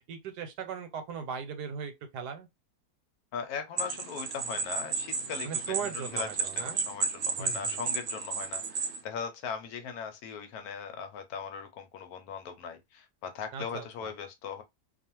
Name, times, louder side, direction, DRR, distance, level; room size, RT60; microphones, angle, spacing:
voice 1, 0.1-2.5 5.4-6.8 7.4-7.8 13.5-14.1, right 7 dB, 90° right, 1.3 m, -38 dB
voice 2, 3.3-14.6, left 6 dB, 70° left, 1.0 m, -39 dB
sound 1, 3.8-9.0, right 4 dB, 65° right, 0.8 m, -33 dB
2.5 x 2.4 x 2.9 m
omnidirectional pair, 1.7 m